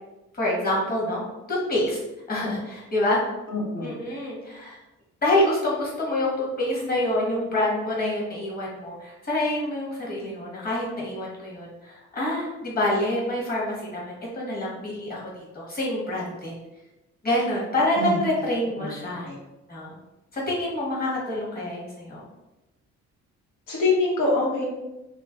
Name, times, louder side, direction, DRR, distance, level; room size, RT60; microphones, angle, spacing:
voice 1, 0.3-1.2 1.5-2.0 2.3-3.2 3.8-4.8 5.2-16.6 17.2-19.3 19.7-20.0 20.3-22.2, left 1 dB, 30° left, -4 dB, 1.3 m, -27 dB
voice 2, 3.5-3.9 18.0-18.2 18.8-18.9 19.2-19.4 23.7-24.6, left 3 dB, 85° left, -4 dB, 1.2 m, -24 dB
2.9 x 2.1 x 3.8 m, 0.98 s
cardioid pair, 90°, 30 cm